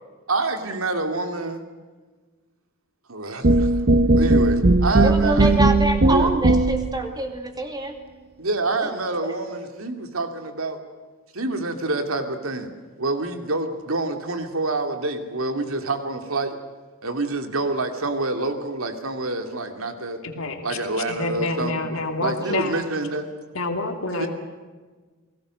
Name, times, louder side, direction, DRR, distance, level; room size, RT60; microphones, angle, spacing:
voice 1, 0.3-1.6 3.1-3.8 4.1-5.5 6.1-6.3 8.4-10.8 11.3-12.7 13.0-16.6 17.0-20.2 20.6-21.9 22.2-23.3 24.2-24.3, right 2 dB, 90° right, 6 dB, 2.8 m, -27 dB
sound 1, 3.4-7.0, right 2 dB, 50° right, 1.0 m, -17 dB
voice 2, 5.0-7.9 8.8-8.9 9.2-9.3 22.4-22.7, right 1 dB, 20° right, 4 dB, 2.5 m, -26 dB
voice 3, 20.2-20.8 21.1-22.8 23.5-24.3, left 2 dB, 80° left, 4 dB, 2.8 m, -27 dB
30.0 x 19.0 x 6.6 m, 1.4 s
head